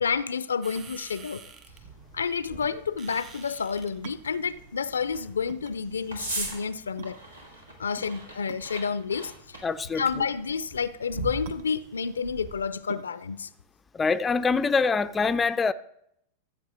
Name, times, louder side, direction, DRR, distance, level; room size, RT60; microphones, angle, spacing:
voice 1, 0.0-1.4 2.1-7.2 7.8-9.3 10.0-13.5, left 6 dB, 75° left, 0.4 m, -30 dB
sound 1, 0.6-6.3, right 6 dB, 30° right, 1.7 m, -51 dB
sound 2, 0.7-15.0, right 7 dB, 55° right, 0.9 m, -49 dB
sound 3, 1.7-12.7, right 2 dB, 85° right, 2.5 m, -41 dB
voice 2, 9.6-10.3 13.9-15.7, left 4 dB, 20° left, 0.4 m, -25 dB
14.0 x 7.9 x 3.4 m
figure-of-eight pair, 90°, 0 cm